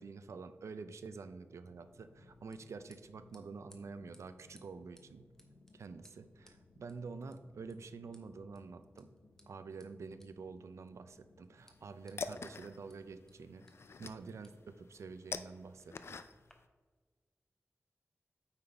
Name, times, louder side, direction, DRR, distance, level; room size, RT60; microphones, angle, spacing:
voice 1, 0.0-5.3 5.7-9.1 9.5-13.7 14.0-16.2, right 4 dB, 80° right, 11 dB, 0.4 m, -48 dB
sound 1, 1.6-14.8, left 3 dB, 75° left, 0.8 m, -65 dB
sound 2, 1.7-16.5, left 1 dB, 10° left, 0.8 m, -70 dB
sound 3, 11.6-16.6, left 4 dB, 60° left, 0.3 m, -46 dB
8.8 x 3.9 x 4.5 m, 1.4 s
wide cardioid pair, 115°, 5 cm